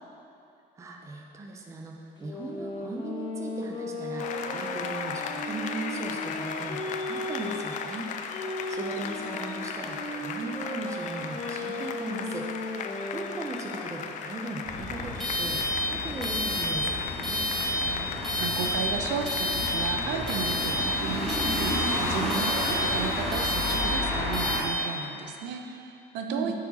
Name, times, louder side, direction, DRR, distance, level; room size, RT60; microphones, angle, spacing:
voice 1, 0.8-8.1 8.7-17.4 26.3-26.5, right 2 dB, 15° right, 1 dB, 0.5 m, -38 dB
sound 1, 2.2-7.7 8.3-13.5, left 1 dB, 20° left, 0.8 m, -36 dB
Applause, 4.2-22.5, left 6 dB, 40° left, 0.4 m, -38 dB
sound 2, 14.7-24.6, left 1 dB, ahead, 1.9 m, -28 dB
voice 2, 17.6-26.6, right 6 dB, 70° right, 4 dB, 0.7 m, -34 dB
9.6 x 4.8 x 4.1 m, 2.7 s
cardioid pair, 170°, 19 cm